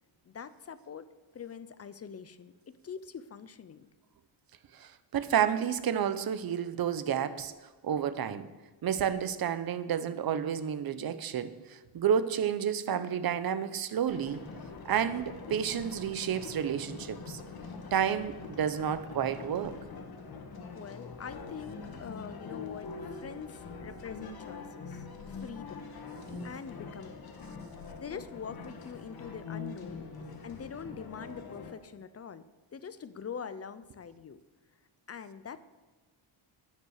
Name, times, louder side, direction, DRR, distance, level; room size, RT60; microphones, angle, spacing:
voice 1, 0.2-1.1 1.3-3.9 20.7-25.9 26.4-27.3 28.0-30.0 30.4-32.5 32.7-34.4 35.1-35.6, left 6 dB, 30° left, 14 dB, 0.5 m, -44 dB
voice 2, 4.7-7.5 7.8-8.5 8.8-14.4 14.8-17.4 17.9-19.8 26.3-26.5, right 8 dB, 50° right, 13 dB, 0.8 m, -30 dB
sound 1, 14.1-31.7, left 4 dB, 50° left, 1.6 m, -44 dB
9.9 x 9.5 x 6.4 m, 1.2 s
wide cardioid pair, 145°, 48 cm